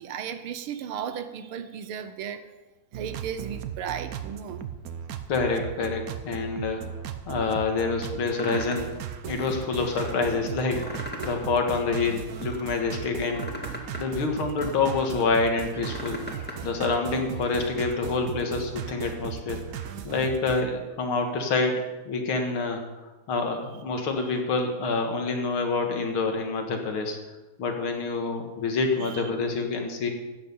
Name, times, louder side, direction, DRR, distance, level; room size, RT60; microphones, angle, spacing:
voice 1, 0.0-2.5 2.9-4.7 24.2-24.3 29.0-29.3, right 8 dB, 90° right, 11 dB, 1.8 m, -35 dB
sound 1, 2.9-20.7, right 9 dB, 60° right, 1.0 m, -37 dB
voice 2, 5.3-6.8 7.3-8.9 9.3-16.2 16.6-19.8 20.0-21.7 22.1-22.8 23.3-27.2 27.6-30.1, left 4 dB, 80° left, 4 dB, 2.4 m, -27 dB
sound 2, 8.3-8.9 9.4-10.1 10.6-11.5 11.8-12.6 13.1-15.2 15.6-16.6 16.9-17.6, left 1 dB, 5° left, 1.6 m, -39 dB
14.0 x 9.0 x 5.5 m, 1.1 s
omnidirectional pair, 2.3 m